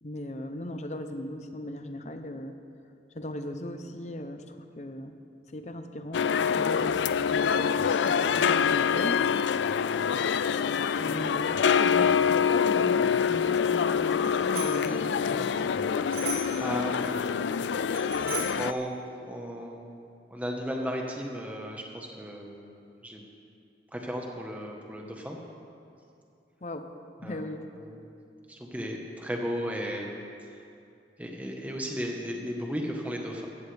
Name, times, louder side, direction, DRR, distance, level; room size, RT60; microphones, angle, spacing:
voice 1, 0.0-2.6 3.1-5.1 5.5-7.7 8.1-9.2 11.0-15.5 26.6-26.9 27.2-27.7, left 1 dB, 40° left, 8 dB, 0.7 m, -37 dB
sound 1, 6.1-18.7, left 7 dB, 85° left, 0.4 m, -25 dB
Bicycle bell, 14.2-14.9 16.1-16.7 17.9-18.7, right 3 dB, 60° right, 3.7 m, -37 dB
voice 2, 16.6-17.4 18.6-18.9 19.2-20.0 20.3-22.7 23.0-23.2 23.9-25.4 27.2-27.4 27.8-28.0 28.5-30.1 31.2-33.5, equal, 10° right, 0 dB, 1.3 m, -35 dB
16.0 x 14.0 x 3.5 m, 2.5 s
head